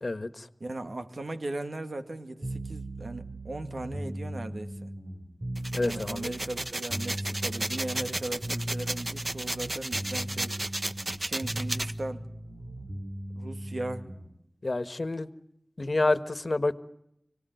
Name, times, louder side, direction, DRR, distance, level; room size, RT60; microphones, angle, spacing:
voice 1, 0.0-0.5 5.7-6.3 14.6-15.3 15.8-16.8, left 2 dB, 70° left, 12 dB, 1.4 m, -28 dB
voice 2, 0.6-4.9 5.8-10.6 11.2-12.2 13.3-14.1, right 2 dB, 85° right, 7 dB, 2.0 m, -37 dB
sound 1, 2.4-14.3, right 1 dB, 65° right, 6.0 m, -38 dB
sound 2, 5.6-11.9, right 1 dB, 50° right, 1.3 m, -33 dB
30.0 x 18.5 x 9.3 m, 0.78 s
wide cardioid pair, 45°, 0 cm